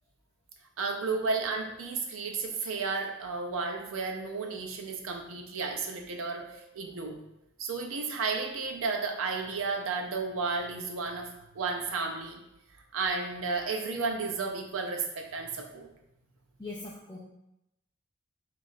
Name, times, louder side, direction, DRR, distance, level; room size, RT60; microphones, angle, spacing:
voice 1, 0.8-7.2 7.6-12.4 12.9-15.9, right 4 dB, 75° right, 3 dB, 0.6 m, -33 dB
voice 2, 16.6-17.2, left 3 dB, 15° left, -5 dB, 0.4 m, -40 dB
3.0 x 2.4 x 4.0 m, 0.86 s
head